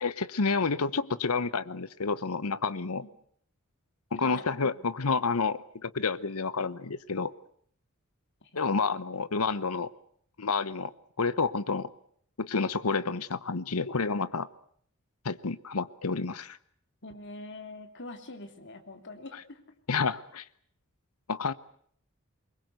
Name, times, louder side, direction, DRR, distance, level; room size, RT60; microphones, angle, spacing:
voice 1, 0.0-3.0 4.1-7.3 8.6-9.9 10.4-10.9 11.2-11.9 12.4-14.5 15.2-16.6 19.9-20.4 21.3-21.5, left 4 dB, 80° left, 15 dB, 1.0 m, -29 dB
voice 2, 4.2-4.7 8.5-9.1 17.0-19.6, left 2 dB, 55° left, 6 dB, 3.2 m, -44 dB
24.0 x 21.5 x 8.0 m, 0.63 s
head